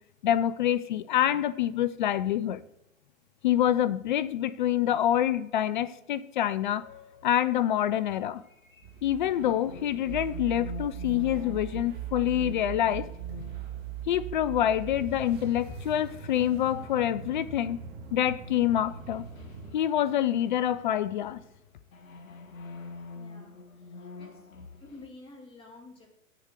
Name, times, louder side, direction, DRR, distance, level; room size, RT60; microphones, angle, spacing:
voice 1, 0.2-2.6 3.4-6.8 7.2-8.4 9.0-13.1 14.1-17.8 18.1-19.3 19.7-21.4, left 11 dB, 35° left, 0.4 m, -26 dB
sound 1, 6.7-17.7 18.1-25.1, left 3 dB, 70° left, 1.4 m, -47 dB
sound 2, 8.8-19.8, right 8 dB, 25° right, 1.0 m, -40 dB
voice 2, 23.1-23.6 24.0-24.3 24.8-26.1, left 2 dB, 15° left, 2.5 m, -49 dB
7.9 x 7.6 x 6.0 m
figure-of-eight pair, 115°, 42 cm